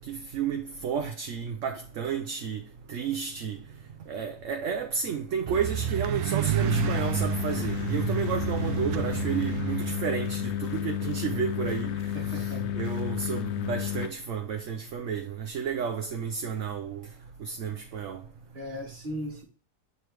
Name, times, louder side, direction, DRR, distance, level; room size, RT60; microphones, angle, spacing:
voice 1, 0.0-2.6 2.9-3.6 4.1-12.0 12.3-17.1 17.4-18.2, right 7 dB, 60° right, 0.9 m, -32 dB
sound 1, 5.5-10.0, right 8 dB, 80° right, 1.1 m, -30 dB
sound 2, 6.6-14.1, left 10 dB, 65° left, 0.7 m, -32 dB
voice 2, 12.1-12.9 18.5-19.4, equal, 25° right, 1.9 m, -37 dB
8.1 x 3.3 x 4.6 m
omnidirectional pair, 1.7 m